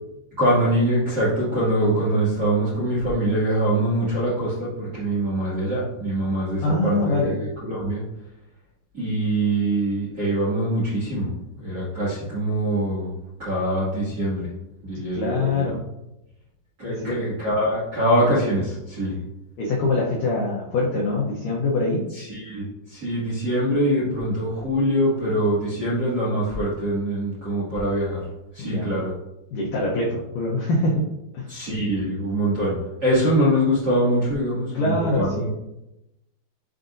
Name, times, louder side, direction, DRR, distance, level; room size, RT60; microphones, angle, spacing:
voice 1, 0.4-8.0 8.9-13.1 13.4-14.5 14.8-15.6 16.8-19.1 22.1-28.2 28.5-29.1 31.5-32.7 33.0-35.5, right 1 dB, 35° right, -10 dB, 1.7 m, -23 dB
voice 2, 6.6-7.4 14.9-15.8 16.9-17.2 19.6-22.0 28.6-28.9 29.5-31.0 31.3-31.5 34.7-35.5, left 2 dB, 80° left, -3 dB, 1.9 m, -24 dB
10.5 x 3.8 x 2.6 m, 0.91 s
omnidirectional pair, 4.9 m